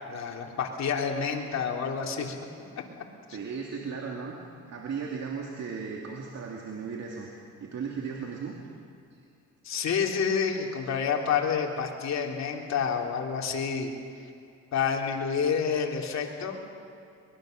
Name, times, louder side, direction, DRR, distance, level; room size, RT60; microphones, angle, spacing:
voice 1, 0.1-2.3 9.6-13.9 14.7-16.6, left 6 dB, 60° left, 0 dB, 3.2 m, -28 dB
voice 2, 3.3-4.3 4.7-7.3 7.6-8.6 9.1-9.2, right 5 dB, 60° right, -1 dB, 2.6 m, -36 dB
24.0 x 21.0 x 6.6 m, 2.4 s
cardioid pair, 90°, 30 cm